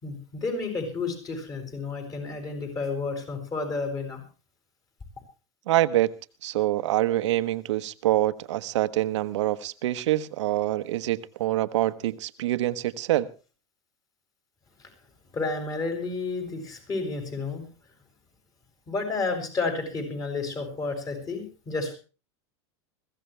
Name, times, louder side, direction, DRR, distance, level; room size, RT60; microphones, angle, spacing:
voice 1, 0.0-4.2 15.3-17.6 18.9-21.9, left 3 dB, 25° left, 4 dB, 6.9 m, -31 dB
voice 2, 5.7-6.1 6.4-13.3, right 14 dB, 85° right, 12 dB, 1.1 m, -25 dB
21.5 x 16.0 x 3.3 m, 0.35 s
supercardioid pair, 135°, 15 cm